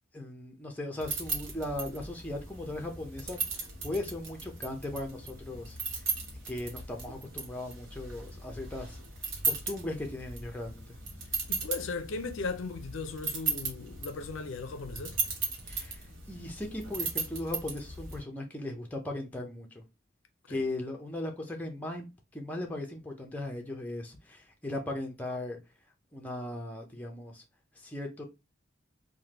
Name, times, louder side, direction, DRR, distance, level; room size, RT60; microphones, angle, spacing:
voice 1, 0.1-5.8 6.5-9.0 9.4-10.8 15.6-19.8 20.5-22.1 22.3-25.6 26.1-27.4 27.7-28.2, left 1 dB, 10° left, 0.5 m, -38 dB
sound 1, 1.0-18.2, right 4 dB, 65° right, 1.0 m, -37 dB
voice 2, 11.5-15.2 20.5-20.6, left 4 dB, 70° left, 0.4 m, -37 dB
3.3 x 2.1 x 2.9 m
head